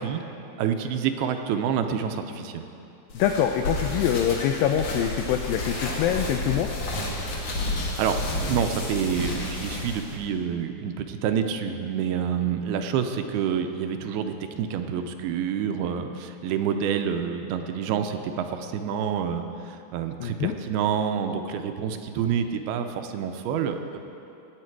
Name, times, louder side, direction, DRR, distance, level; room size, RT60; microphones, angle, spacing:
voice 1, 0.6-2.7 7.8-24.0, right 7 dB, 80° right, 7 dB, 2.5 m, -28 dB
voice 2, 3.1-6.7 20.2-20.5, left 9 dB, 90° left, 5 dB, 2.0 m, -24 dB
sound 1, 3.1-10.2, left 2 dB, 55° left, 2.9 m, -31 dB
17.5 x 8.9 x 4.6 m, 2.7 s
omnidirectional pair, 4.6 m